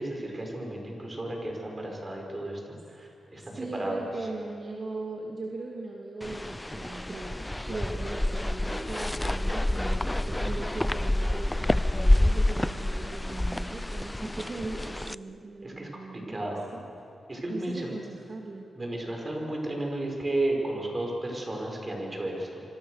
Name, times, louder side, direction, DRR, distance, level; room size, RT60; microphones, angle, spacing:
voice 1, 0.0-4.1 15.6-16.7 17.3-17.9 18.7-22.6, right 1 dB, 30° right, 1 dB, 6.2 m, -33 dB
voice 2, 3.3-16.8 17.5-18.7, right 3 dB, 50° right, 0 dB, 2.6 m, -39 dB
sound 1, 6.2-15.1, left 1 dB, 10° left, 0.5 m, -28 dB
27.0 x 26.5 x 6.7 m, 2.6 s
cardioid pair, 85°, 0 cm